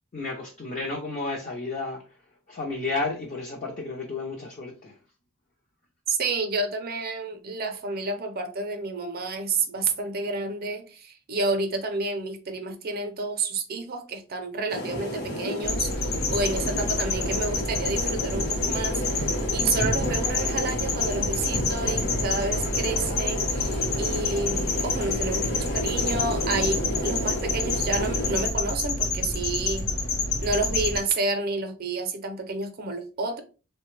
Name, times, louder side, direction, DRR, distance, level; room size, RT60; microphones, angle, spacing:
voice 1, 0.1-2.0 2.5-5.0 19.9-20.1, left 3 dB, 40° left, 0.5 m, -32 dB
voice 2, 6.1-29.9 30.4-33.4, right 3 dB, 50° right, 0.6 m, -30 dB
sound 1, 14.7-28.5, left 1 dB, 55° left, 0.9 m, -31 dB
sound 2, 15.6-31.0, left 3 dB, 80° left, 0.8 m, -28 dB
3.2 x 2.2 x 3.1 m
head